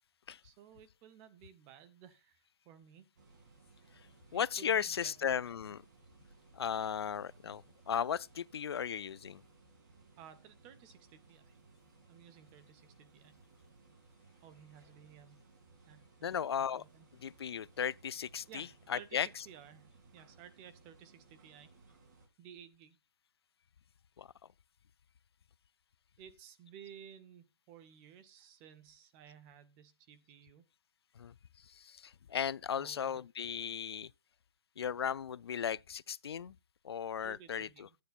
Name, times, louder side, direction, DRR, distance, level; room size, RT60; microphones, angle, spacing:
voice 1, 0.4-3.1 4.3-5.3 10.2-11.6 12.1-13.4 14.4-15.4 15.9-17.1 18.5-21.7 22.4-23.0 26.2-30.6 32.8-33.2 37.2-38.0, right 9 dB, 15° right, 0.4 m, -56 dB
sound 1, 3.2-22.3, right 3 dB, 45° right, 2.3 m, -62 dB
voice 2, 4.3-5.8 6.5-9.4 16.2-16.8 17.2-19.3 24.2-24.3 31.2-31.3 31.7-34.1 34.8-36.6 36.8-37.9, left 8 dB, 90° left, 0.4 m, -36 dB
12.0 x 9.4 x 2.3 m
hypercardioid pair, 170°, 13 cm